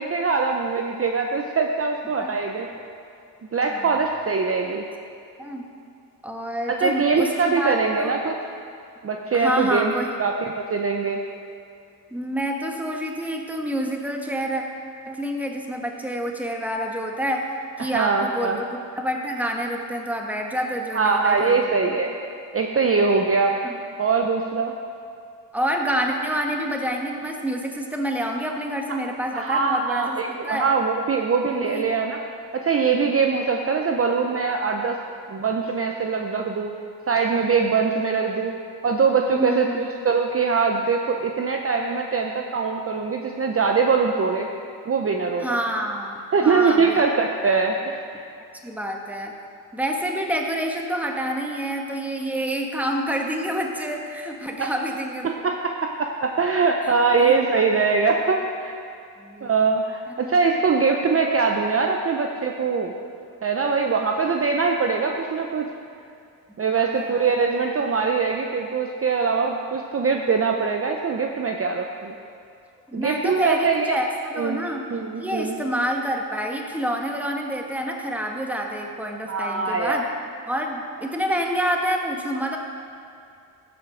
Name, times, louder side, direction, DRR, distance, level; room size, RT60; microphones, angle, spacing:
voice 1, 0.0-2.7 3.5-4.8 6.8-8.3 9.0-9.9 10.2-11.2 17.8-18.6 20.9-22.1 22.5-23.6 24.0-24.7 29.3-32.2 32.5-35.0 35.3-36.7 37.1-38.5 38.8-39.7 40.0-44.5 44.9-45.6 46.3-48.3 54.6-54.7 55.2-58.8 59.4-62.9 63.4-65.7 66.6-72.1 72.9-74.0 74.4-74.6 74.9-75.6 79.3-80.0, right 5 dB, 35° right, 2 dB, 0.7 m, -22 dB
voice 2, 3.6-4.0 5.4-5.6 6.2-8.2 9.3-10.3 12.1-14.6 15.0-17.5 17.8-21.7 23.6-23.8 25.5-30.7 31.6-31.8 39.3-39.9 45.4-47.0 48.6-49.3 49.7-55.5 56.8-57.3 58.2-58.3 59.2-59.5 60.1-60.3 66.7-67.3 72.9-74.9 75.2-80.1 80.5-82.6, equal, 5° right, 1 dB, 1.5 m, -28 dB
15.0 x 5.7 x 5.0 m, 2.5 s
cardioid pair, 65°, 42 cm